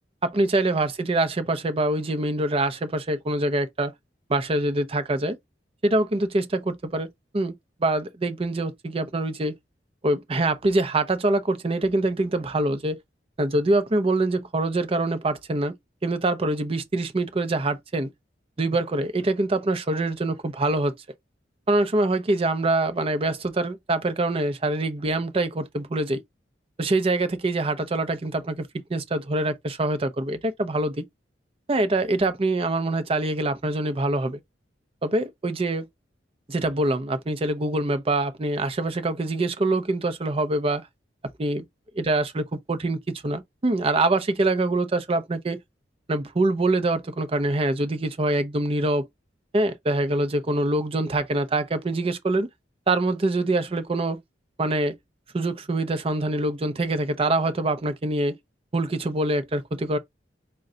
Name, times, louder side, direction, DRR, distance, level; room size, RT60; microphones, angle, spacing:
voice 1, 0.2-3.9 4.3-5.4 5.8-7.1 7.3-7.5 7.8-9.5 10.0-13.0 13.4-15.8 16.0-18.1 18.6-21.0 21.7-26.2 26.8-31.1 31.7-34.4 35.0-35.9 36.5-40.8 41.4-41.6 42.0-45.6 46.1-49.1 49.5-52.5 52.9-54.2 54.6-55.0 55.3-58.4 58.7-60.0, right 2 dB, 35° right, 0.6 m, -24 dB
3.8 x 2.2 x 3.7 m
head